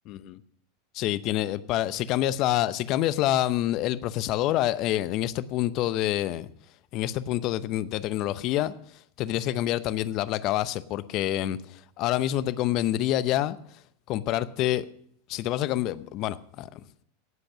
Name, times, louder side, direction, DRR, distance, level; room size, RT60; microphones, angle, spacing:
voice 1, 0.1-0.4 0.9-6.5 6.9-8.7 9.2-13.6 14.1-14.9 15.3-16.8, left 13 dB, 50° left, 16 dB, 0.7 m, -27 dB
17.5 x 7.8 x 6.2 m, 0.67 s
hypercardioid pair, 100°, 0 cm